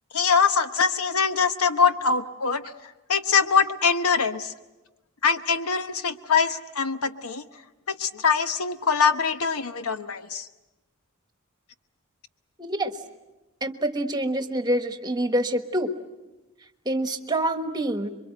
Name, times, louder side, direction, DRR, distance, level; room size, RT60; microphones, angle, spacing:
voice 1, 0.1-2.6 3.1-4.5 5.2-7.4 7.9-10.5, left 5 dB, 85° left, 9 dB, 1.1 m, -23 dB
voice 2, 12.6-12.9 13.6-15.9 16.8-18.1, right 1 dB, 20° right, 7 dB, 1.3 m, -26 dB
27.0 x 23.5 x 7.9 m, 1.1 s
head